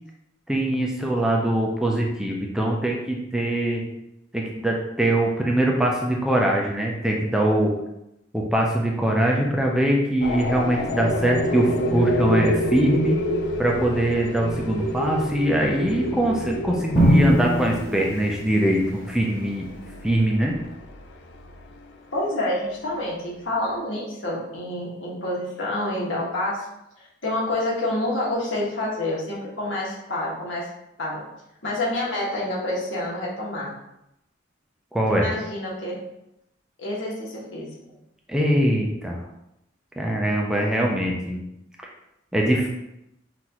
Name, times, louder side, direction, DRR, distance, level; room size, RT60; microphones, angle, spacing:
voice 1, 0.5-3.8 4.3-7.7 8.3-13.2 13.6-19.7 20.0-20.5 34.9-35.3 38.3-39.2 40.0-41.4 42.3-42.7, right 1 dB, 5° right, -1 dB, 0.4 m, -22 dB
sound 1, 10.2-21.8, left 1 dB, 60° left, 0.4 m, -28 dB
Drum, 16.9-19.0, equal, 25° left, 1.4 m, -21 dB
voice 2, 22.1-26.7 27.0-30.7 31.0-31.2 31.6-33.7 35.1-36.0 36.8-37.7, left 1 dB, 80° left, -4 dB, 1.4 m, -28 dB
5.7 x 2.6 x 3.0 m, 0.85 s
head